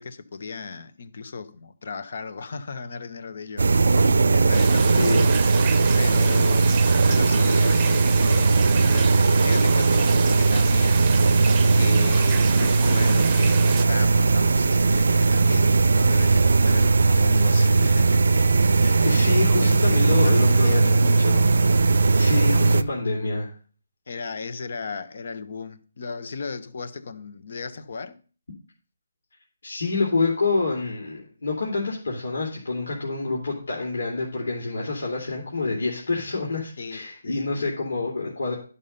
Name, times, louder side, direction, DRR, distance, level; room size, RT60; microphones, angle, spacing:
voice 1, 0.0-4.0 4.3-5.2 5.9-9.1 9.4-11.1 11.7-18.3 18.8-19.1 19.6-21.2 24.1-28.2 36.8-37.6, left 4 dB, 60° left, 1.1 m, -36 dB
sound 1, 3.6-22.8, right 3 dB, 80° right, 0.5 m, -18 dB
sound 2, 4.5-13.8, right 9 dB, 20° right, 0.7 m, -34 dB
voice 2, 5.0-5.4 19.0-21.4 21.9-23.5 29.6-38.6, left 3 dB, 85° left, 3.0 m, -27 dB
11.5 x 5.5 x 5.5 m
hypercardioid pair, 165°, 0 cm